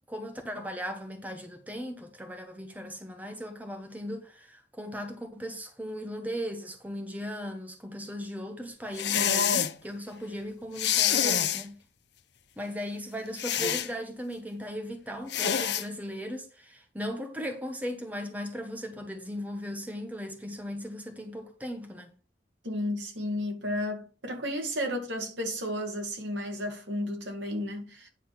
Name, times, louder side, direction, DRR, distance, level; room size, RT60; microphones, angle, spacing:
voice 1, 0.1-11.8 12.6-22.1, equal, 10° right, 1.1 m, -37 dB
sound 1, 9.0-9.7 10.8-11.6 13.4-13.9 15.3-15.8, left 9 dB, 65° left, 0.8 m, -26 dB
voice 2, 22.6-28.1, left 1 dB, 75° right, 2.4 m, -33 dB
9.8 x 3.8 x 6.1 m
head